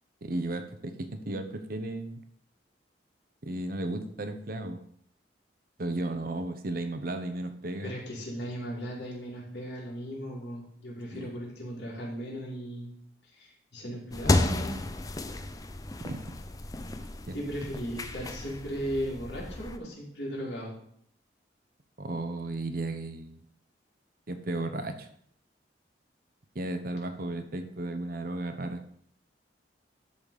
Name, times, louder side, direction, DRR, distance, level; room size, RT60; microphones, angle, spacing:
voice 1, 0.2-2.2 3.4-4.8 5.8-7.9 11.1-11.2 16.0-16.2 17.3-17.4 22.0-23.4 24.3-25.1 26.5-28.8, right 2 dB, 55° right, 8 dB, 0.9 m, -34 dB
voice 2, 7.8-12.9 13.4-14.7 17.3-20.8, equal, 65° left, -4 dB, 3.6 m, -37 dB
sound 1, 14.1-19.8, left 2 dB, 20° left, 0.5 m, -32 dB
12.0 x 4.1 x 5.1 m, 0.66 s
head